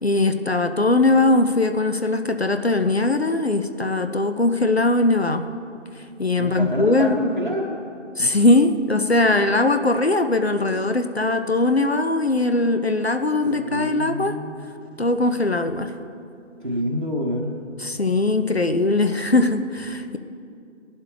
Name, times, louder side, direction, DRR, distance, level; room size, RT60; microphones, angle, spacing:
voice 1, 0.0-5.5 6.0-7.2 8.2-14.4 15.0-15.9 17.8-20.2, left 2 dB, 55° left, 7 dB, 0.6 m, -20 dB
voice 2, 6.4-7.7 13.4-14.6 16.6-17.6, equal, 40° right, -3 dB, 1.1 m, -27 dB
18.5 x 11.5 x 3.3 m, 2.5 s
figure-of-eight pair, 170°, 37 cm